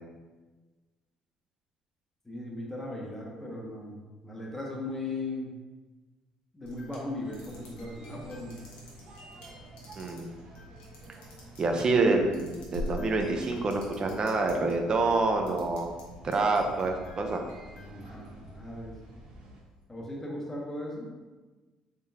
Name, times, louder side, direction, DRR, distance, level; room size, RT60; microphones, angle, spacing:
voice 1, 2.2-5.6 6.5-8.6 17.8-19.0 19.9-21.1, left 2 dB, 15° left, -2 dB, 0.8 m, -38 dB
sound 1, 6.6-14.7 15.1-16.0 16.3-18.7, left 1 dB, 85° left, 1.0 m, -46 dB
sound 2, 7.2-19.6, right 1 dB, 60° right, 1.0 m, -50 dB
voice 2, 10.0-10.3 11.6-15.9 16.2-17.4, right 3 dB, 40° right, 3 dB, 0.6 m, -27 dB
3.7 x 3.5 x 2.7 m, 1.2 s
supercardioid pair, 90°, 2 cm